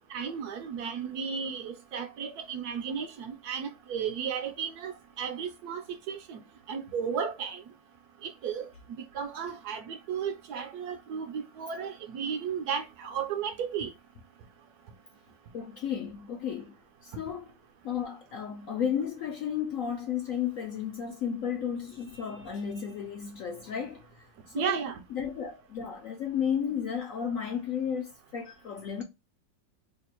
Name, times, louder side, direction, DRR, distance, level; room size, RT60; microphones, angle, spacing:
voice 1, 0.1-5.8 6.1-6.4 6.7-7.6 8.2-13.9 24.5-25.0, right 7 dB, 70° right, 1.0 m, -34 dB
voice 2, 15.5-16.7 17.0-17.5 17.8-24.1 24.5-24.8 25.1-29.0, left 8 dB, 65° left, 0.8 m, -33 dB
3.1 x 2.5 x 4.3 m
omnidirectional pair, 1.9 m